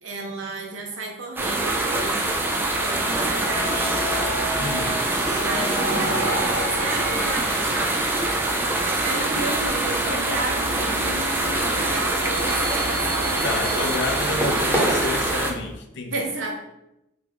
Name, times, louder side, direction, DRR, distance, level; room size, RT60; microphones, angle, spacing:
voice 1, 0.0-3.7 5.4-7.9 9.0-11.0 11.8-13.9 14.3-14.7 16.1-16.5, right 2 dB, 80° right, 1 dB, 0.8 m, -33 dB
sound 1, 1.4-15.5, right 2 dB, 10° right, 0.3 m, -24 dB
sound 2, 2.8-15.3, right 1 dB, 55° right, 1.5 m, -32 dB
voice 2, 4.5-5.0 13.4-16.3, left 3 dB, 60° left, 5 dB, 0.5 m, -30 dB
sound 3, 9.9-15.7, equal, 10° left, 1.0 m, -32 dB
3.4 x 2.4 x 3.4 m, 0.86 s
head